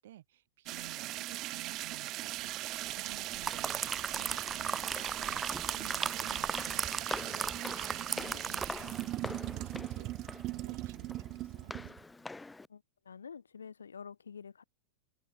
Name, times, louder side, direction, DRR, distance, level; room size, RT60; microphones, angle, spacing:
voice 1, 0.0-11.9, right 13 dB, 55° right, 4.9 m, -54 dB
sound 1, 0.7-12.0, right 17 dB, 35° right, 0.4 m, -39 dB
sound 2, 3.1-9.2 9.5-9.7, right 5 dB, 15° right, 1.6 m, -37 dB
Walk footsteps, 4.7-12.7, left 3 dB, 10° left, 1.6 m, -46 dB
voice 2, 12.7-14.6, left 6 dB, 70° left, 2.8 m, -48 dB
figure-of-eight pair, 90°, 0 cm